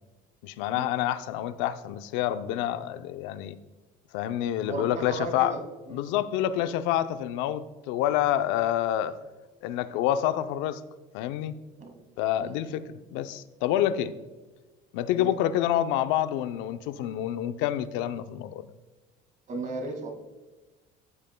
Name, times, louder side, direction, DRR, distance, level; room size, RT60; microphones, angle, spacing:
voice 1, 0.4-3.6 4.1-5.5 5.9-9.1 9.6-10.8 11.1-11.6 12.2-14.2 14.9-18.7, left 12 dB, 80° left, 12 dB, 0.6 m, -28 dB
voice 2, 4.7-6.0 6.6-6.8 11.8-12.0 12.4-12.6 14.0-14.1 15.1-15.3 19.5-20.1, right 2 dB, 40° right, 4 dB, 2.0 m, -36 dB
14.0 x 7.7 x 2.2 m, 1.2 s
cardioid pair, 125°, 19 cm